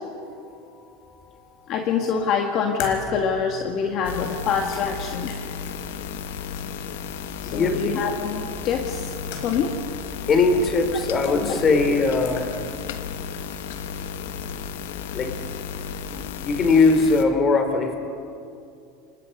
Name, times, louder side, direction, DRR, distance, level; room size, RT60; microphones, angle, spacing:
voice 1, 0.6-1.7 7.4-7.8 10.3-12.5 15.1-15.3 16.1-17.9, left 3 dB, 30° left, 7 dB, 3.2 m, -21 dB
voice 2, 1.7-5.3 7.4-9.1 9.4-9.8 11.3-11.6 11.9-12.0, left 6 dB, 50° left, 2 dB, 2.0 m, -25 dB
sound 1, 2.8-7.2 7.5-7.6 8.8-9.8 10.0-10.1 10.8-11.3 11.9-12.9 13.2-14.1, left 5 dB, 65° left, 4.9 m, -41 dB
sound 2, 4.0-17.2, left 7 dB, 80° left, 1.3 m, -33 dB
28.5 x 19.5 x 5.4 m, 2.5 s
supercardioid pair, 115°, 0 cm